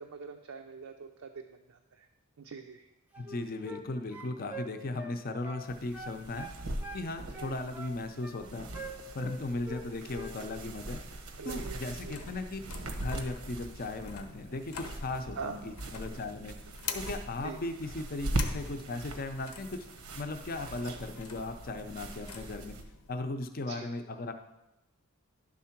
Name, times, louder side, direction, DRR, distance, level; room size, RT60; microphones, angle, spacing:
voice 1, 0.0-2.1 2.4-2.9 7.3-7.6 9.5-9.9 11.4-12.2 15.4-15.6 17.4-17.6 23.7-23.9, right 5 dB, 70° right, 4 dB, 0.5 m, -44 dB
sound 1, 3.1-3.9 4.1-5.7 5.9-7.1 7.3-8.4 8.7-9.8 10.1-10.4, right 2 dB, 5° right, 0.6 m, -44 dB
voice 2, 3.2-6.5 6.9-8.7 9.1-11.0 11.4-12.6 13.0-16.5 16.9-19.9 20.1-22.8 23.1-24.3, left 2 dB, 40° left, 6 dB, 0.6 m, -37 dB
sound 2, 5.7-22.8, right 1 dB, 90° right, 0.9 m, -41 dB
sound 3, 11.7-23.2, left 5 dB, 85° left, 0.8 m, -47 dB
11.0 x 3.7 x 5.8 m, 0.94 s
head